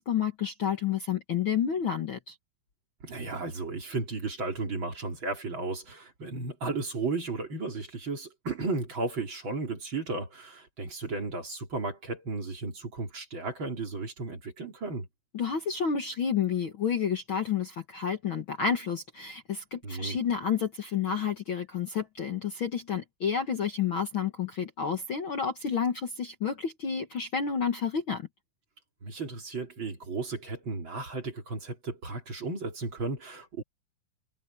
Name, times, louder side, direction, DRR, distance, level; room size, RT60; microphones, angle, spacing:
voice 1, 0.0-2.4 15.3-28.3, left 7 dB, 50° left, 1.8 m, -30 dB
voice 2, 3.0-15.1 19.8-20.2 29.0-33.6, right 3 dB, 40° right, 3.7 m, -34 dB
omnidirectional pair, 3.7 m